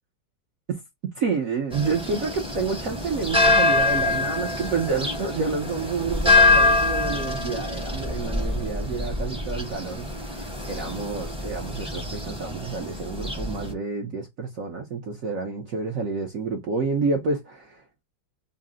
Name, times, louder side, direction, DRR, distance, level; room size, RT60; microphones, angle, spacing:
voice 1, 1.1-10.2 10.7-18.0, right 4 dB, 70° right, 0.7 m, -29 dB
bird ambiance with motorcycle and church bells, 1.7-13.7, left 3 dB, 5° right, 0.4 m, -25 dB
4.1 x 2.0 x 3.5 m
omnidirectional pair, 2.4 m